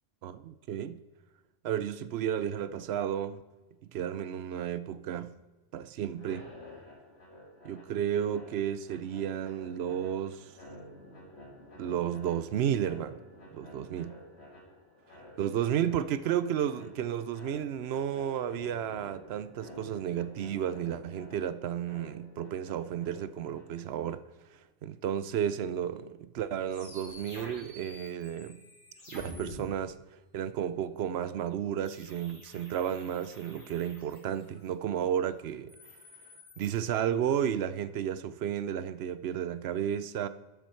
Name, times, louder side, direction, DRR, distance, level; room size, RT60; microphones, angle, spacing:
voice 1, 0.2-1.0 1.6-3.4 3.9-5.3 5.7-6.5 7.6-10.4 11.8-13.2 13.5-14.1 15.4-24.2 24.8-28.6 29.1-29.9 30.3-35.7 36.6-40.3, right 9 dB, 75° right, 0.8 m, -32 dB
sound 1, 6.1-24.0, equal, 80° left, 1.8 m, -51 dB
sound 2, 26.7-29.6 31.9-34.7 35.5-36.7, left 1 dB, 50° left, 2.9 m, -49 dB
12.0 x 7.2 x 4.4 m
omnidirectional pair, 1.1 m